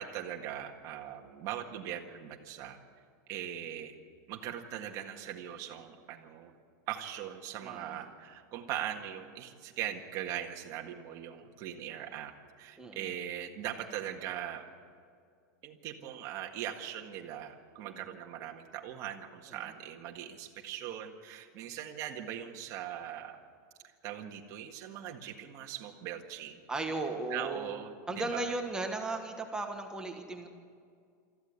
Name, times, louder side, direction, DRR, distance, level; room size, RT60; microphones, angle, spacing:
voice 1, 0.0-2.8 3.3-4.0 4.3-6.5 6.9-14.7 15.6-23.4 24.0-26.6 27.3-28.5, right 10 dB, 35° right, 3 dB, 1.8 m, -40 dB
voice 2, 7.6-8.0 12.8-13.1 17.8-18.1 19.5-19.7 26.7-27.7 28.1-30.5, right 2 dB, 5° right, 3 dB, 1.2 m, -36 dB
24.5 x 14.5 x 8.3 m, 2.2 s
supercardioid pair, 165°, 10 cm